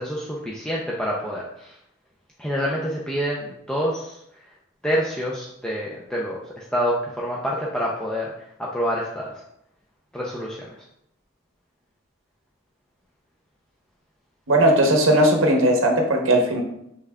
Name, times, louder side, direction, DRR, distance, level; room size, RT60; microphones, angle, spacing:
voice 1, 0.0-1.8 2.4-4.2 4.8-9.3 10.1-10.7, equal, 5° left, -4 dB, 0.4 m, -27 dB
voice 2, 14.5-16.6, right 1 dB, 65° right, 2 dB, 0.8 m, -18 dB
5.6 x 3.5 x 2.2 m, 0.77 s
head